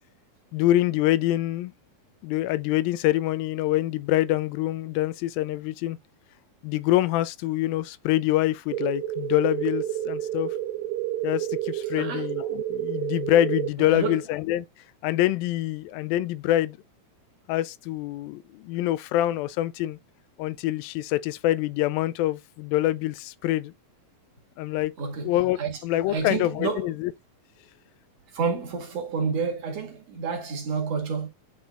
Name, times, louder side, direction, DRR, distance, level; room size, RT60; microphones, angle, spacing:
voice 1, 0.5-1.7 2.2-6.0 6.6-10.6 11.2-14.6 15.0-16.8 17.5-20.0 20.4-23.7 24.6-24.9 25.2-27.1, left 14 dB, 85° left, 2.3 m, -25 dB
sound 1, 8.7-13.7, right 12 dB, 80° right, 2.2 m, -30 dB
voice 2, 11.9-12.3 13.8-14.3 25.0-25.8 26.1-26.9 28.3-31.3, right 5 dB, 50° right, 2.7 m, -29 dB
10.5 x 3.9 x 2.4 m
omnidirectional pair, 4.2 m